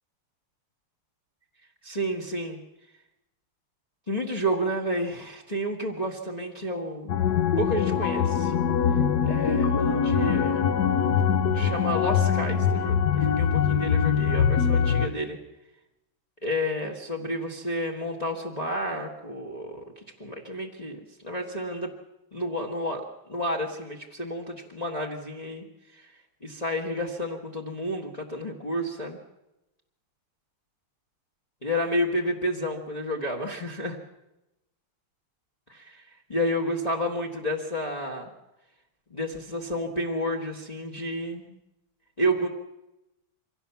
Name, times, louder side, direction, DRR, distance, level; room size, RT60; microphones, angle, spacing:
voice 1, 1.8-2.6 4.1-7.1 7.6-8.5 9.2-10.6 11.5-15.4 16.4-19.8 20.2-21.9 22.3-25.6 25.9-26.1 26.4-29.2 31.6-34.0 35.7-36.0 36.3-38.3 39.1-41.5 42.2-42.5, equal, 20° left, 1 dB, 1.5 m, -30 dB
sound 1, 7.1-15.1, left 7 dB, 60° left, 1.2 m, -23 dB
24.5 x 16.5 x 7.1 m, 0.94 s
omnidirectional pair, 2.4 m